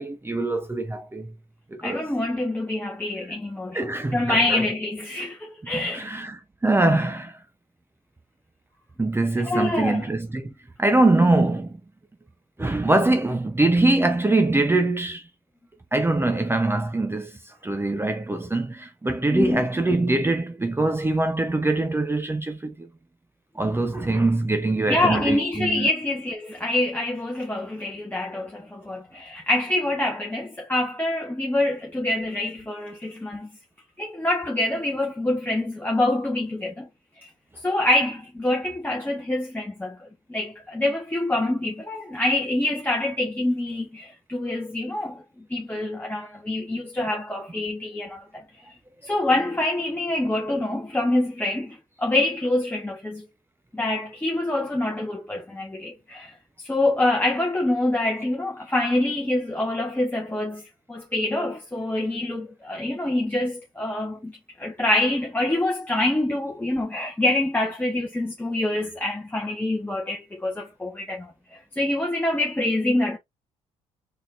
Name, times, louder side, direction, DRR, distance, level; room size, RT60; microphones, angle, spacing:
voice 1, 0.0-1.3 1.7-2.1 3.7-4.7 5.7-7.4 9.0-10.5 10.8-11.8 12.6-15.3 15.9-22.9 23.5-25.9, right 2 dB, 15° right, 0.7 m, -23 dB
voice 2, 1.8-3.8 4.1-6.1 9.4-10.1 19.3-19.7 24.9-33.5 34.0-36.9 37.2-37.3 37.6-45.2 45.5-48.4 49.0-53.3 53.7-56.3 56.6-60.6 60.9-73.2, left 1 dB, 10° left, 1.3 m, -26 dB
3.8 x 3.6 x 2.5 m
hypercardioid pair, 55°, 17 cm